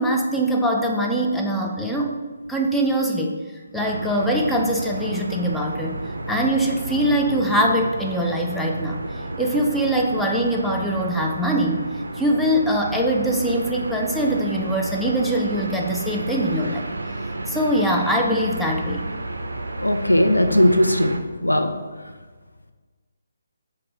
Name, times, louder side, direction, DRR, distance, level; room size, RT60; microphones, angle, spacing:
voice 1, 0.0-2.2 2.5-3.4 3.7-6.0 6.3-11.8 12.1-16.9 17.5-19.0, right 1 dB, ahead, 0 dB, 0.3 m, -22 dB
sound 1, 3.7-21.2, right 2 dB, 65° right, 0.4 m, -31 dB
voice 2, 19.8-21.7, left 1 dB, 85° left, 6 dB, 0.4 m, -18 dB
4.2 x 2.1 x 4.0 m, 1.4 s
figure-of-eight pair, 145°, 0 cm